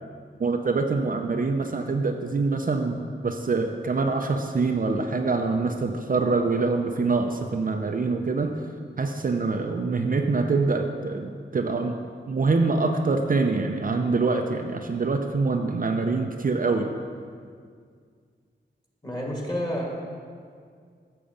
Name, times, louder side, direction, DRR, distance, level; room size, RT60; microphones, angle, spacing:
voice 1, 0.4-8.7 9.0-11.9 12.3-16.9, right 3 dB, 45° right, 4 dB, 0.6 m, -25 dB
voice 2, 19.0-19.9, equal, 20° left, -2 dB, 2.1 m, -29 dB
7.1 x 6.7 x 5.1 m, 2.1 s
cardioid pair, 50°, 20 cm